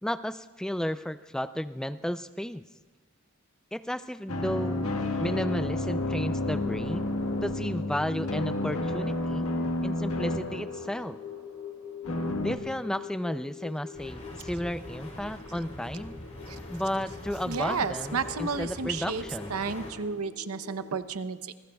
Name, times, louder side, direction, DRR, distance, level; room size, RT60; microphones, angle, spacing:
voice 1, 0.0-2.6 3.7-4.9 5.2-7.1 7.4-9.5 9.8-11.2 12.4-16.2 16.7-19.6, equal, 5° left, 11 dB, 0.4 m, -33 dB
sound 1, 4.3-11.3 12.0-12.6, left 1 dB, 85° left, 1.5 m, -31 dB
sound 2, 4.6-21.0, left 7 dB, 50° left, 1.9 m, -45 dB
sound 3, 13.9-19.9, equal, 35° left, 3.6 m, -43 dB
voice 2, 17.5-19.2 19.5-21.5, right 5 dB, 80° right, 11 dB, 0.7 m, -32 dB
27.0 x 20.5 x 2.3 m, 1.3 s
head